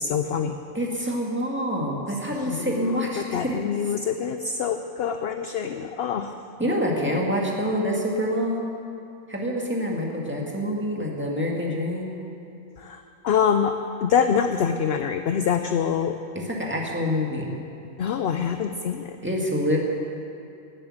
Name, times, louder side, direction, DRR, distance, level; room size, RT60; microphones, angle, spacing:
voice 1, 0.0-0.6 2.4-3.0 3.3-6.3 12.8-13.7 14.0-16.2 18.0-19.2, left 7 dB, 60° left, 7 dB, 0.7 m, -25 dB
voice 2, 0.7-3.6 3.8-3.9 6.6-8.6 9.3-12.1 16.4-17.5 19.2-19.8, equal, 10° right, -2 dB, 1.9 m, -26 dB
13.0 x 8.6 x 8.9 m, 2.6 s
omnidirectional pair, 1.5 m